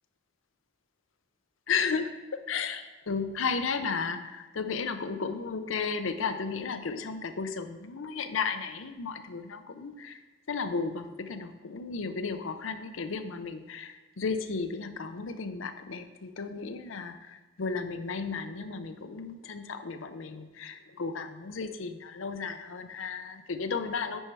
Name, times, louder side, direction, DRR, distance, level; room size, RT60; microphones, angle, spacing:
voice 1, 1.7-10.2 10.5-24.2, left 5 dB, 85° left, 9 dB, 0.6 m, -34 dB
9.9 x 4.4 x 4.7 m, 1.2 s
head